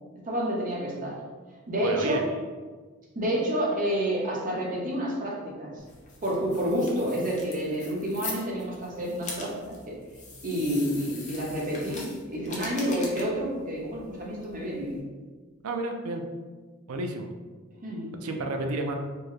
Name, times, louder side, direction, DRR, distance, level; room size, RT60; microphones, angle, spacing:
voice 1, 0.2-1.2 1.7-2.3 3.1-5.7 6.2-9.9 10.4-15.0 17.8-18.1, equal, 40° right, -3 dB, 0.8 m, -29 dB
voice 2, 1.8-2.2 15.6-16.2 16.9-17.3 18.2-18.9, right 2 dB, 85° right, 4 dB, 0.4 m, -31 dB
sound 1, 5.8-15.0, left 3 dB, 35° left, 0.7 m, -43 dB
4.5 x 2.1 x 3.2 m, 1.4 s
head